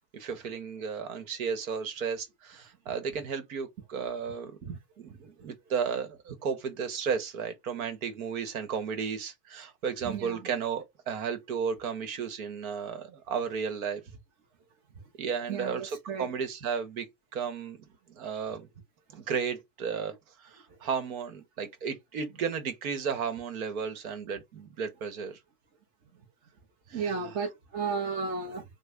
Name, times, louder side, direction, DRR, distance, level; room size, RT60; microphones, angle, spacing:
voice 1, 0.1-4.7 5.0-14.0 15.2-17.1 17.3-17.8 18.1-18.7 19.1-20.1 20.4-25.4 26.9-27.4, right 6 dB, 55° right, 1.0 m, -34 dB
voice 2, 10.0-10.5 15.5-16.3 26.9-28.6, right 5 dB, 20° right, 0.6 m, -33 dB
3.2 x 2.1 x 3.5 m
hypercardioid pair, 140°, 49 cm